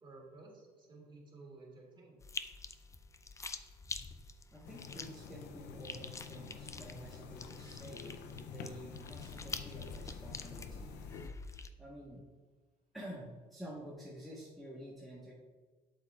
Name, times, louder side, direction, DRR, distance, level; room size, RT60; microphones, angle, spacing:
voice 1, 0.0-2.2, right 3 dB, 30° right, -2 dB, 2.2 m, -54 dB
sound 1, 2.2-11.7, left 4 dB, 20° left, 0.4 m, -47 dB
voice 2, 4.5-10.9 11.8-12.2 12.9-15.3, equal, ahead, -6 dB, 1.3 m, -49 dB
sound 2, 4.6-11.3, left 6 dB, 85° left, 0.6 m, -48 dB
7.9 x 7.2 x 2.4 m, 1.4 s
cardioid pair, 110°, 17 cm